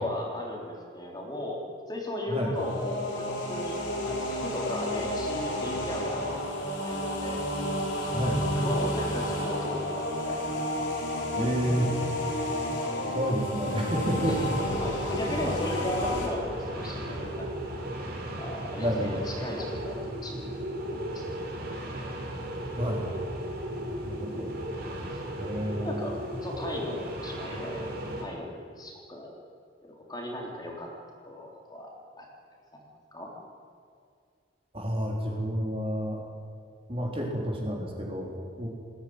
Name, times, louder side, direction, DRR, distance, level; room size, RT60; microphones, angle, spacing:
voice 1, 0.0-1.6 1.9-6.4 6.8-7.4 8.6-10.6 14.2-14.5 14.8-17.8 18.4-20.5 21.1-21.2 25.1-25.2 25.8-29.3 29.8-30.9 31.2-31.9 32.2-32.3 32.7-32.8 33.1-33.3, left 1 dB, 20° left, -1 dB, 3.7 m, -36 dB
sound 1, 2.5-16.3, left 1 dB, 80° left, 4.3 m, -31 dB
voice 2, 11.3-11.9 13.1-14.6 15.3-15.6 18.8-19.2 22.8-23.1 23.9-24.5 25.4-26.0 34.7-36.3 36.9-38.7, equal, 30° right, -1 dB, 4.0 m, -30 dB
sound 2, 13.9-28.2, right 1 dB, 55° right, 4.3 m, -35 dB
20.0 x 16.0 x 9.7 m, 2.2 s
head